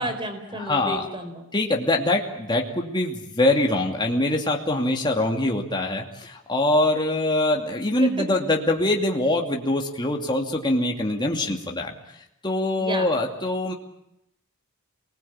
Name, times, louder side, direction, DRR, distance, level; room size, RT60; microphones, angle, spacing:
voice 1, 0.0-1.5 8.0-8.3 12.8-13.1, right 1 dB, 25° right, 8 dB, 4.3 m, -31 dB
voice 2, 0.7-1.1 1.5-11.9 12.4-13.7, left 1 dB, 20° left, 1 dB, 2.6 m, -23 dB
28.5 x 20.5 x 8.9 m, 0.82 s
head